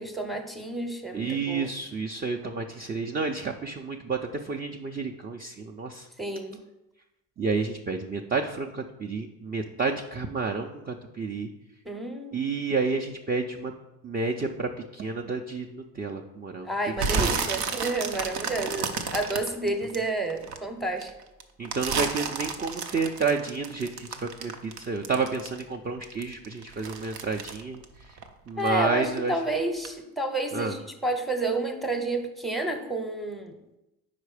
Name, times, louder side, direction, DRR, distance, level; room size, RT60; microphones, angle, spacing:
voice 1, 0.0-1.7 6.2-6.6 11.8-12.6 16.6-21.1 28.6-33.6, right 2 dB, ahead, 5 dB, 0.8 m, -30 dB
voice 2, 1.1-4.2 4.4-6.0 7.4-11.5 12.3-13.7 14.0-16.7 17.1-17.3 21.6-27.8 28.5-29.3 30.5-30.7, right 4 dB, 25° right, 1 dB, 0.4 m, -30 dB
sound 1, 17.0-20.6 21.0-25.8 26.0-28.7 29.0-29.4 29.8-29.9, right 5 dB, 80° right, 0.7 m, -31 dB
4.9 x 4.3 x 4.9 m, 0.92 s
supercardioid pair, 80°, 38 cm